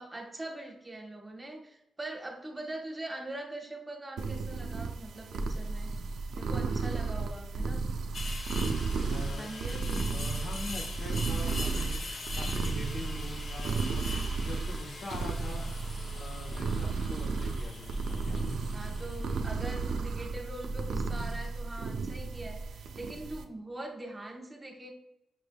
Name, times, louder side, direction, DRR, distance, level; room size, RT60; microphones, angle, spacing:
voice 1, 0.0-5.9 6.4-7.9 9.2-10.2 18.7-24.9, right 1 dB, 20° right, 1 dB, 0.9 m, -42 dB
sound 1, 4.2-23.4, right 4 dB, 85° right, 0.4 m, -33 dB
sound 2, 8.1-20.0, left 3 dB, 55° left, 0.7 m, -43 dB
voice 2, 8.9-9.5 10.1-14.1 14.4-15.7 16.1-19.2, left 2 dB, 85° left, 0 dB, 1.1 m, -44 dB
5.9 x 3.3 x 2.2 m, 0.86 s
cardioid pair, 95°, 0 cm